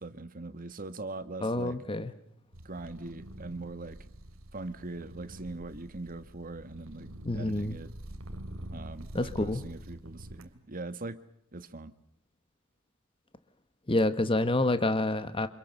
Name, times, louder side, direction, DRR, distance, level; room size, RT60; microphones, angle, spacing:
voice 1, 0.0-1.8 2.6-4.1 4.5-7.9 8.7-11.2 11.5-11.9, right 2 dB, 40° right, 11 dB, 1.7 m, -41 dB
voice 2, 1.4-2.1 7.2-7.8 9.1-9.6 13.9-15.5, left 2 dB, 25° left, 11 dB, 1.3 m, -28 dB
sound 1, 2.5-10.5, right 1 dB, 70° right, 2.6 m, -46 dB
28.5 x 27.0 x 6.8 m, 0.67 s
head